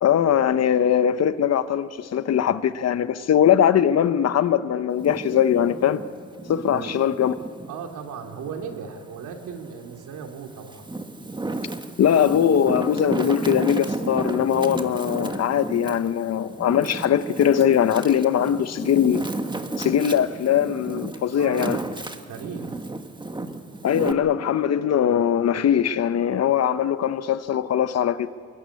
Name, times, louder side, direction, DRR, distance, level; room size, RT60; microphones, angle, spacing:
voice 1, 0.0-6.0 6.5-7.3 12.0-19.3 19.8-21.8 23.8-28.3, left 9 dB, 55° left, 1.0 m, -21 dB
Wind, 4.9-7.8 8.3-9.6 10.2-24.1, right 2 dB, 15° right, 1.5 m, -33 dB
voice 2, 7.7-10.8 21.3-21.9 22.3-22.9, right 6 dB, 80° right, 2.9 m, -36 dB
21.0 x 21.0 x 9.7 m
cardioid pair, 90°, 30 cm